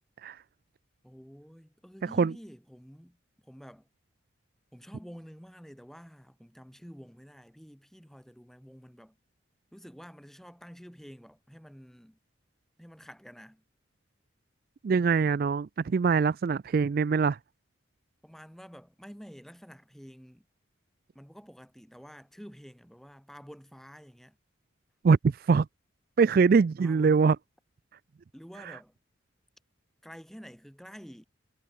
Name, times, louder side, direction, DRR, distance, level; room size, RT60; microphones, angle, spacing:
voice 1, 1.0-3.2 3.4-3.9 4.7-9.2 9.7-12.2 12.8-13.6 18.2-20.4 21.1-24.4 26.8-27.2 28.3-28.9 30.0-31.2, equal, ahead, 4.3 m, -49 dB
voice 2, 14.8-17.4 25.0-25.7 26.2-27.4 28.6-28.8, right 5 dB, 45° right, 0.3 m, -23 dB
head